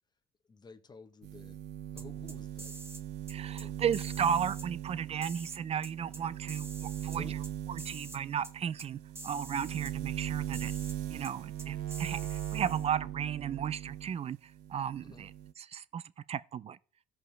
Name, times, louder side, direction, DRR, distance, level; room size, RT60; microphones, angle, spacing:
voice 1, 0.5-1.6 1.9-2.8 3.6-3.8 7.1-7.4 15.0-15.3, left 4 dB, 25° left, 0.9 m, -52 dB
sound 1, 1.2-14.2 14.5-15.5, right 12 dB, 80° right, 0.7 m, -39 dB
sound 2, 2.0-3.0 3.3-3.6 3.9-4.7 5.2-6.2 6.5-7.5 7.8-8.2 8.4-8.5 8.8-8.9 9.1-9.9 10.5-11.0 11.2-11.3 11.6-12.9, right 2 dB, 15° right, 1.1 m, -47 dB
voice 2, 3.3-7.3 7.7-9.0 9.2-10.7 11.1-15.3 15.6-16.0 16.3-16.8, right 8 dB, 35° right, 0.4 m, -35 dB
15.5 x 5.5 x 3.3 m
cardioid pair, 110°, 17 cm